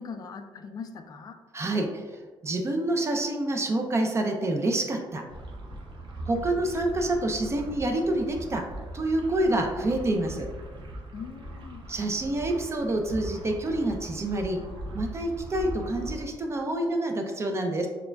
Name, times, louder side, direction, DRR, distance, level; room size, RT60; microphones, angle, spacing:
voice 1, 0.0-1.4 11.1-11.8, left 5 dB, 45° left, 7 dB, 0.3 m, -40 dB
voice 2, 1.5-1.9 2.4-5.2 6.3-8.6 8.9-10.5 11.9-14.6 14.9-17.9, right 1 dB, 30° right, 3 dB, 0.4 m, -27 dB
sound 1, 5.3-16.2, right 1 dB, 65° right, 0.7 m, -40 dB
6.6 x 2.3 x 2.2 m, 1.4 s
cardioid pair, 110°, 9 cm